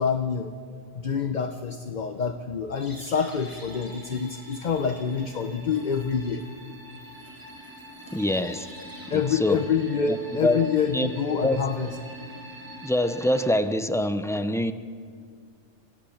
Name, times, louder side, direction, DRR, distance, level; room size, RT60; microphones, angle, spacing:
voice 1, 0.0-6.4 9.1-12.0, left 6 dB, 45° left, 7 dB, 0.9 m, -27 dB
sound 1, 2.7-13.5, right 1 dB, 15° right, 2.4 m, -44 dB
voice 2, 8.1-8.7 9.1-9.6 10.1-10.2 10.4-10.6 10.9-11.1 11.4-11.6 12.8-14.7, left 1 dB, 5° left, 10 dB, 0.5 m, -24 dB
26.0 x 16.5 x 7.2 m, 2.1 s
omnidirectional pair, 1.2 m